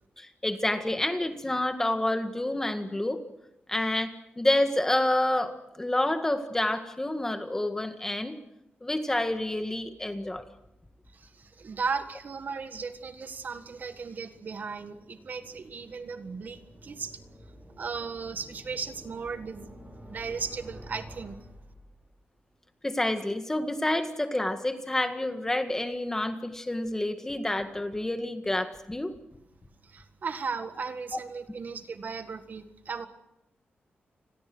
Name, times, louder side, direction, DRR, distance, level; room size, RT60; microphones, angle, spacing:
voice 1, 0.2-3.2 3.7-8.4 8.8-10.5 22.8-29.2, left 1 dB, 10° left, 7 dB, 1.8 m, -28 dB
sound 1, 9.4-22.3, equal, 20° right, 7.3 m, -52 dB
voice 2, 11.1-17.2 17.8-21.4 29.8-33.1, right 5 dB, 50° right, 9 dB, 1.6 m, -36 dB
29.5 x 21.5 x 6.2 m, 0.85 s
wide cardioid pair, 150°, 4 cm